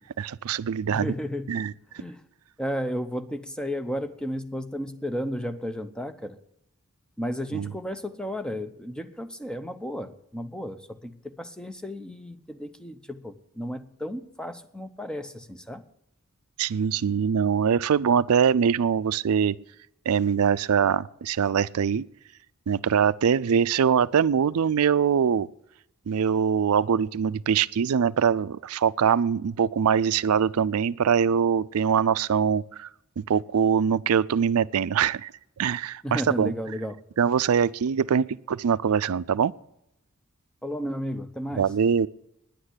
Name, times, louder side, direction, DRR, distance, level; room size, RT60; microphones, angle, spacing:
voice 1, 0.2-1.1 1.5-1.7 7.5-7.7 16.6-19.5 20.1-22.0 22.7-25.5 26.1-32.9 33.2-35.3 35.6-36.5 37.2-39.5 41.6-42.1, right 7 dB, 80° right, 0.4 m, -23 dB
voice 2, 0.9-1.6 1.9-2.2 2.6-6.4 7.2-15.8 36.0-37.0 40.6-41.7, equal, 5° left, 0.7 m, -33 dB
10.0 x 8.8 x 9.7 m
head